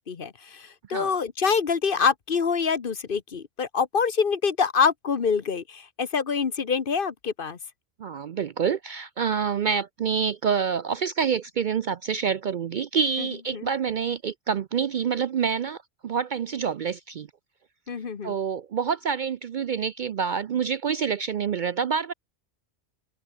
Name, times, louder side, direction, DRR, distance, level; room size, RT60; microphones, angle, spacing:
voice 1, 0.1-7.6 13.5-13.7 17.9-18.3, left 5 dB, 50° left, 1.2 m, -25 dB
voice 2, 8.0-17.3 18.2-22.1, right 6 dB, 55° right, 0.6 m, -27 dB
open air
omnidirectional pair, 1.2 m